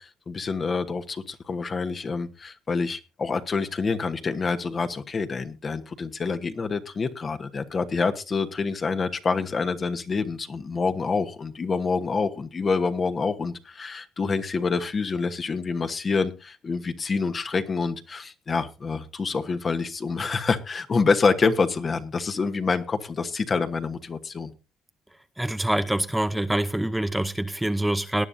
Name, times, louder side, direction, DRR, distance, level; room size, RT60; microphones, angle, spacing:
voice 1, 0.0-24.5, left 4 dB, 40° left, 1.2 m, -27 dB
voice 2, 25.4-28.3, right 1 dB, 5° right, 0.7 m, -25 dB
18.5 x 9.9 x 2.7 m
supercardioid pair, 75°, 0 cm